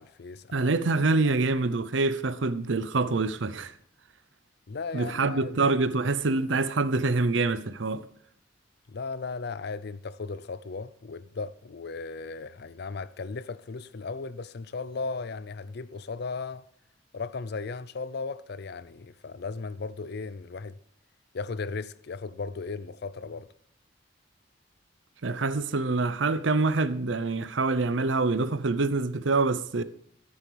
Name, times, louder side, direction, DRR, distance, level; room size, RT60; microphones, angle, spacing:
voice 1, 0.0-0.7 1.2-1.4 4.7-5.7 8.9-16.6 17.1-20.8 21.3-23.5, left 4 dB, 60° left, 0.5 m, -36 dB
voice 2, 0.5-3.7 4.9-8.0 25.2-29.8, right 3 dB, 75° right, 0.7 m, -26 dB
12.5 x 9.8 x 3.4 m
head